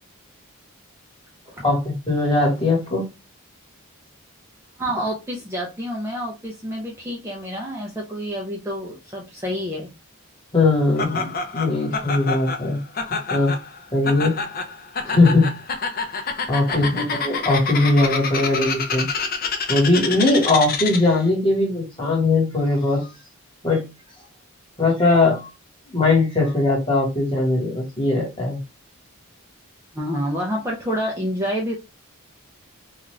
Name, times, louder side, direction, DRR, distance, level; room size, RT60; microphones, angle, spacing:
voice 1, 2.1-3.1 10.5-12.8 13.3-13.5 13.9-14.3 15.0-15.5 16.5-19.1 19.7-23.1 23.6-23.8 24.8-25.5 25.9-28.6, left 2 dB, 20° left, -2 dB, 1.3 m, -20 dB
voice 2, 4.8-9.9 16.7-16.9 29.9-31.7, equal, 10° right, -2 dB, 0.5 m, -28 dB
Laughter, 11.0-21.2, left 4 dB, 45° left, 0.5 m, -28 dB
2.5 x 2.3 x 3.1 m, 0.25 s
head